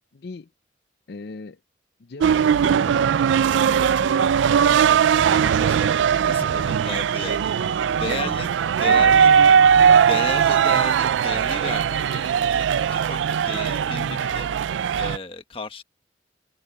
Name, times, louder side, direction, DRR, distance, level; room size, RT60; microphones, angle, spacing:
voice 1, 0.1-0.5 1.1-1.6 2.0-4.4 4.6-5.5 6.2-6.8 8.2-8.4 8.9-9.1 13.9-14.2, left 3 dB, 55° left, 0.5 m, -39 dB
sound 1, 2.2-14.0, left 2 dB, 10° left, 7.4 m, -49 dB
sound 2, 2.2-15.2, right 7 dB, 80° right, 0.3 m, -19 dB
voice 2, 5.4-9.3 10.0-14.5 14.9-15.8, left 3 dB, 30° left, 1.5 m, -34 dB
head